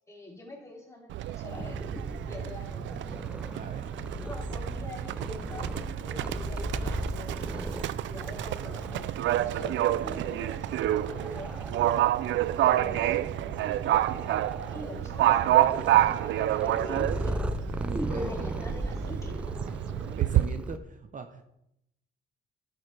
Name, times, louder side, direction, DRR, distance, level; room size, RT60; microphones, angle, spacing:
voice 1, 0.1-1.9 2.3-3.2 3.7-9.2 9.4-13.8 14.7-17.5 18.1-19.4, left 1 dB, 15° left, -2 dB, 3.5 m, -45 dB
Livestock farm animals working animals, 1.1-20.4, right 13 dB, 70° right, 0.4 m, -29 dB
Purr, 1.5-20.8, right 1 dB, 5° right, 0.5 m, -37 dB
voice 2, 3.5-3.9 17.8-18.5 19.7-19.8 20.2-21.4, right 4 dB, 40° right, 7 dB, 0.7 m, -39 dB
11.0 x 9.0 x 3.4 m, 0.82 s
cardioid pair, 90°, 20 cm